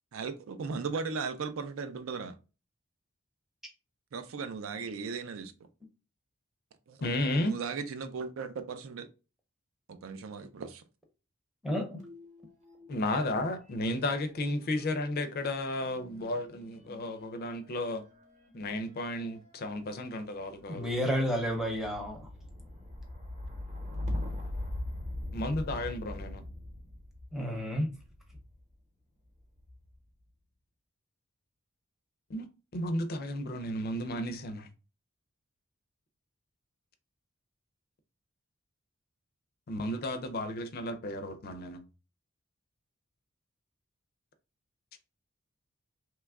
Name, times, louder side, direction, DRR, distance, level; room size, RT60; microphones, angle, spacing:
voice 1, 0.1-2.3 4.1-5.5 6.9-7.0 7.5-9.1 9.9-10.8, right 5 dB, 70° right, 0.4 m, -37 dB
voice 2, 7.0-7.6 12.9-18.0 18.5-20.9 25.3-26.4 32.3-32.5 32.7-34.7 39.7-41.8, left 1 dB, 45° left, 0.5 m, -33 dB
voice 3, 11.6-12.0 20.7-22.3 27.3-27.9, equal, ahead, 0.7 m, -31 dB
sound 1, 12.0-13.3 13.6-28.6 29.4-30.0, left 1 dB, 35° right, 0.9 m, -42 dB
3.0 x 2.3 x 3.5 m
head